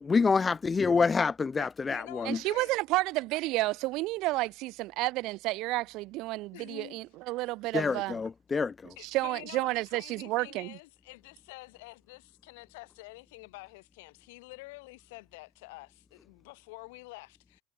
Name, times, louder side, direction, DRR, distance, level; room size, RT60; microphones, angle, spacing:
voice 1, 0.1-2.4 7.7-8.7, left 5 dB, 20° left, 0.5 m, -27 dB
voice 2, 1.6-2.7 4.3-4.4 6.5-7.0 7.4-7.5 9.0-17.6, left 24 dB, 80° left, 4.5 m, -48 dB
voice 3, 2.3-8.2 8.8-10.8, right 20 dB, 65° right, 2.4 m, -31 dB
supercardioid pair, 105°, 0 cm